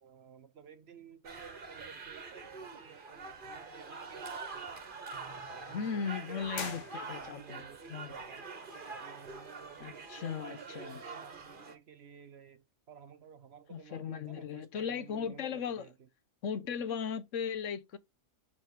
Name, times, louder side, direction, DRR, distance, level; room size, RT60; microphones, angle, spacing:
voice 1, 0.0-4.7 5.5-8.5 8.9-16.1, right 7 dB, 55° right, 0.9 m, -54 dB
sound 1, 1.2-11.7, right 4 dB, 40° right, 1.3 m, -45 dB
voice 2, 5.7-7.6 7.9-8.1 9.8-11.0 13.7-15.9 16.4-18.0, left 7 dB, 65° left, 1.0 m, -37 dB
sound 2, 6.5-7.6, left 7 dB, 90° left, 1.5 m, -43 dB
5.4 x 5.1 x 4.3 m
omnidirectional pair, 1.5 m